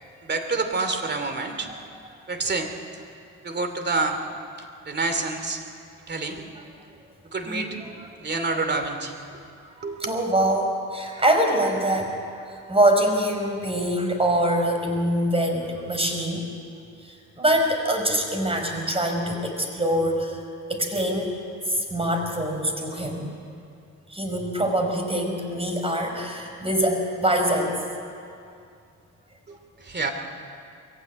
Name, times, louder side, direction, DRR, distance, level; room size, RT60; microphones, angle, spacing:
voice 1, 0.2-1.7 2.3-2.7 3.4-4.2 4.9-5.6 6.1-6.5 7.3-7.8 8.2-9.2 9.8-10.2 29.5-30.1, right 3 dB, 35° right, 7 dB, 2.6 m, -27 dB
voice 2, 7.4-8.1 9.6-12.1 12.5-16.4 17.0-20.4 20.7-21.3 21.7-23.3 24.1-27.7, right 1 dB, 20° right, 4 dB, 4.9 m, -24 dB
22.0 x 15.5 x 9.5 m, 2.4 s
cardioid pair, 90°, 30 cm